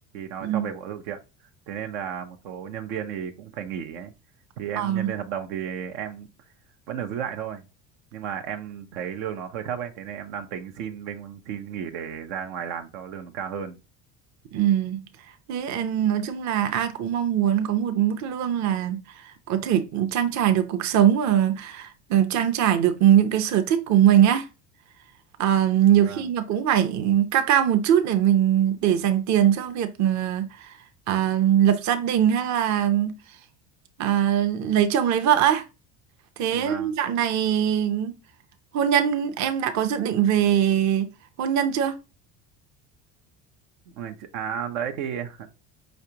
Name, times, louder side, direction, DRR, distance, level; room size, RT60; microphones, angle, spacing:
voice 1, 0.1-1.2 1.7-4.1 4.6-6.3 6.9-7.6 8.1-13.8 25.9-26.3 36.5-36.9 44.0-45.5, right 8 dB, 80° right, 0.8 m, -33 dB
voice 2, 4.8-5.1 14.5-15.1 15.5-24.5 25.4-30.8 31.1-33.1 34.0-35.6 36.4-38.2 38.7-41.1 41.4-41.9, right 10 dB, 50° right, 0.7 m, -22 dB
5.0 x 3.3 x 2.8 m
supercardioid pair, 95°, 37 cm